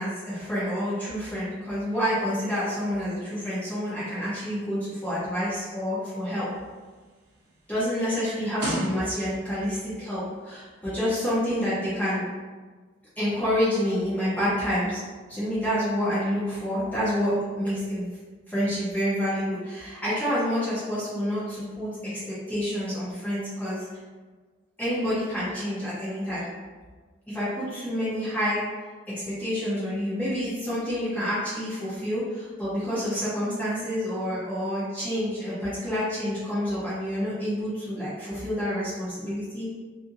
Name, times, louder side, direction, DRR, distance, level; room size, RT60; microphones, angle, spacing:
voice 1, 0.0-6.5 7.7-12.3 13.2-15.0 15.3-18.1 18.5-23.9 24.8-26.5 27.3-28.6 29.4-39.7, equal, 10° left, -11 dB, 0.7 m, -28 dB
sound 1, 6.4-9.6 10.4-10.6, right 1 dB, 55° right, 0.5 m, -35 dB
2.7 x 2.5 x 2.5 m, 1.4 s
head